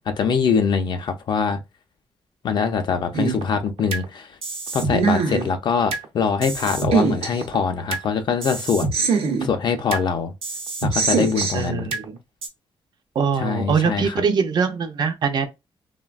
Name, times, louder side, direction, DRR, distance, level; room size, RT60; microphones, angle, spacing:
voice 1, 0.1-1.6 2.4-4.3 4.7-8.9 9.4-10.3 10.8-11.9 13.4-14.2, left 6 dB, 50° left, 0.5 m, -23 dB
sound 1, 3.1-4.0 4.4-6.0 6.4-8.0 8.4-10.0 10.4-12.0 12.4-12.5, right 4 dB, 80° right, 0.7 m, -24 dB
voice 2, 11.5-12.2 13.2-15.5, right 6 dB, 45° right, 0.4 m, -22 dB
3.2 x 2.1 x 2.3 m
wide cardioid pair, 165°, 10 cm